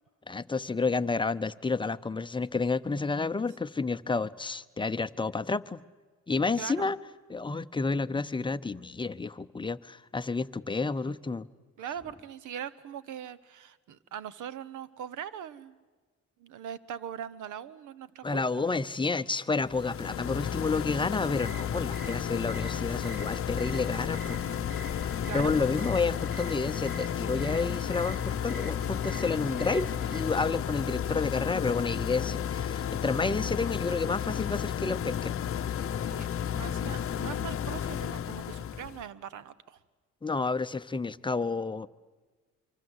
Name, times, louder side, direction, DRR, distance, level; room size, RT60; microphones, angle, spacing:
voice 1, 0.3-5.8 6.3-7.0 7.3-11.5 18.2-24.4 25.0-35.3 40.2-41.9, left 4 dB, 15° left, 12 dB, 0.7 m, -30 dB
voice 2, 6.6-6.9 11.8-15.7 16.4-18.4 25.3-25.5 36.0-39.8, right 9 dB, 80° right, 18 dB, 1.1 m, -41 dB
sound 1, 19.6-39.0, left 9 dB, 45° left, 0.8 m, -32 dB
sound 2, 21.3-30.2, right 1 dB, 35° right, 3.8 m, -45 dB
26.0 x 24.5 x 8.2 m, 1.4 s
cardioid pair, 90°, 30 cm